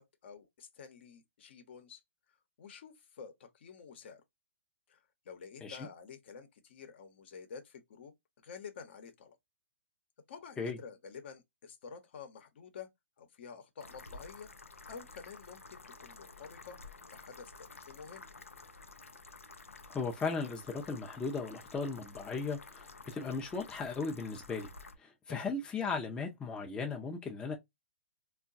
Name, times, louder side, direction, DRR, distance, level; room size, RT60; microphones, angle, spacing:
voice 1, 0.0-2.0 2.6-4.2 4.9-8.1 8.4-9.4 10.3-12.9 13.2-14.5 14.8-16.8 17.1-18.3 25.3-25.6, left 6 dB, 55° left, 0.9 m, -50 dB
sound 1, 13.8-25.0, left 3 dB, 85° left, 0.5 m, -52 dB
voice 2, 19.9-24.7 25.0-27.5, left 4 dB, 10° left, 0.6 m, -37 dB
3.7 x 2.3 x 2.5 m
figure-of-eight pair, 120°, 7 cm